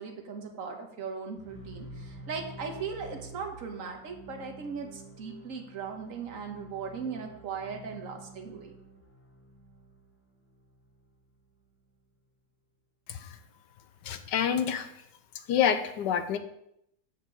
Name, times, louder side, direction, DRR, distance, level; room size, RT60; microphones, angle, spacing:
voice 1, 0.0-8.7, right 5 dB, 45° right, 3 dB, 1.4 m, -38 dB
sound 1, 1.3-11.4, right 1 dB, 10° left, 0.6 m, -49 dB
voice 2, 14.0-14.9 15.5-16.4, left 8 dB, 70° left, 9 dB, 1.1 m, -27 dB
6.6 x 5.2 x 6.8 m, 0.77 s
omnidirectional pair, 2.3 m